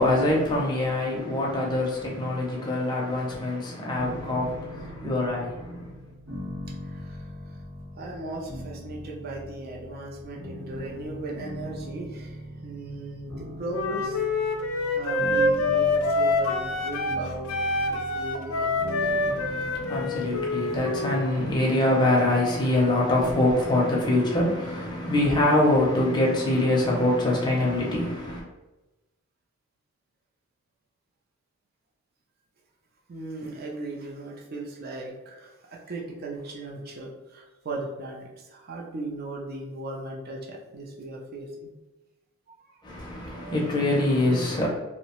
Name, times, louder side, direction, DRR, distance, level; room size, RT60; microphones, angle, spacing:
voice 1, 0.0-5.9 19.4-28.4 42.8-44.7, left 1 dB, 20° left, 0.5 m, -24 dB
sound 1, 4.0-22.9, left 1 dB, 65° right, 0.9 m, -41 dB
voice 2, 6.9-7.2 8.0-14.2 14.9-17.5 17.9-19.2 33.1-41.7 42.6-42.8 43.2-43.8, right 2 dB, 45° right, 0.4 m, -37 dB
Wind instrument woodwind instrument, 13.7-17.2 17.5-21.3, left 2 dB, 85° left, 0.4 m, -26 dB
2.7 x 2.1 x 2.9 m
head